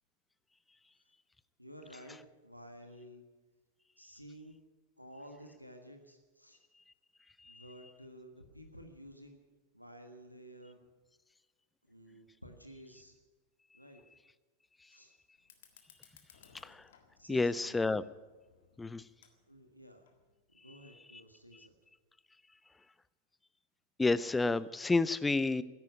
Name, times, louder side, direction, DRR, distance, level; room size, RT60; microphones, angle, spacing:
voice 1, 1.6-3.2 4.0-4.5 5.0-6.6 7.4-9.4 9.7-10.8 11.9-13.1 13.7-14.0 14.9-15.1 17.2-17.8 19.5-20.1 20.5-21.7, equal, 90° right, 5 dB, 1.5 m, -52 dB
Fire, 15.4-20.4, left 8 dB, 60° left, 1.7 m, -64 dB
voice 2, 17.3-18.0 18.8-19.0 24.0-25.6, left 3 dB, 10° left, 18 dB, 0.5 m, -30 dB
13.5 x 10.5 x 9.3 m, 1.2 s
figure-of-eight pair, 90°, 0 cm